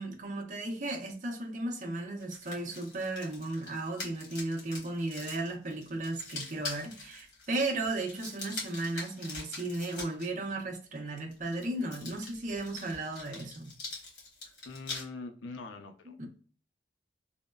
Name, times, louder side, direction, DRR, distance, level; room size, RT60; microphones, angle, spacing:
voice 1, 0.0-13.7 16.2-16.3, right 2 dB, 40° right, 0.5 m, -35 dB
sound 1, 2.2-10.3 11.3-15.0, left 3 dB, 65° left, 1.2 m, -43 dB
voice 2, 14.6-16.3, left 3 dB, 85° left, 0.5 m, -43 dB
2.9 x 2.1 x 2.2 m
head